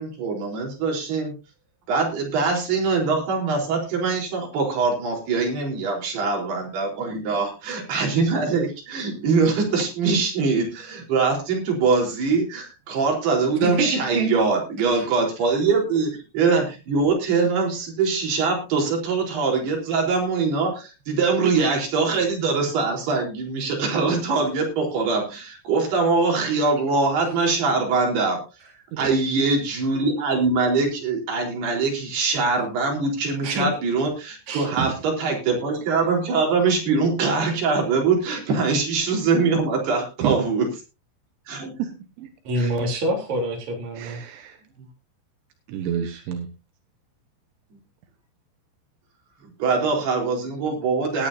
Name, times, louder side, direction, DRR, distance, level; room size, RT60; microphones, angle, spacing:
voice 1, 0.0-1.4 1.9-28.4 29.0-40.7 41.5-41.7 42.6-42.7 49.4-51.3, right 4 dB, 60° right, 0 dB, 5.9 m, -23 dB
voice 2, 13.6-14.3 14.9-15.1 33.4-33.7 34.5-34.7 42.4-44.2, right 1 dB, 40° right, 1 dB, 4.4 m, -26 dB
voice 3, 28.9-29.3 34.7-35.0 40.2-40.4 41.8-42.3 44.0-44.6 45.7-46.5, right 9 dB, 80° right, 6 dB, 3.6 m, -29 dB
18.5 x 11.0 x 2.7 m, 0.30 s
omnidirectional pair, 5.4 m